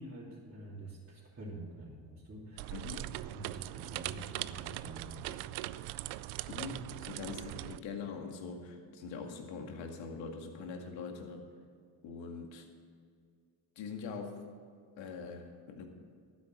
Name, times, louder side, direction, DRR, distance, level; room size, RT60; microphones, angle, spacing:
voice 1, 0.0-5.5, right 1 dB, 25° right, -8 dB, 3.1 m, -47 dB
sound 1, 2.6-7.8, right 16 dB, 85° right, 0.5 m, -41 dB
voice 2, 2.7-3.1 6.5-11.4 12.0-12.7 13.8-14.4 15.0-15.9, left 5 dB, 70° left, 3 dB, 2.2 m, -43 dB
12.0 x 9.6 x 6.4 m, 2.2 s
supercardioid pair, 90°, 47 cm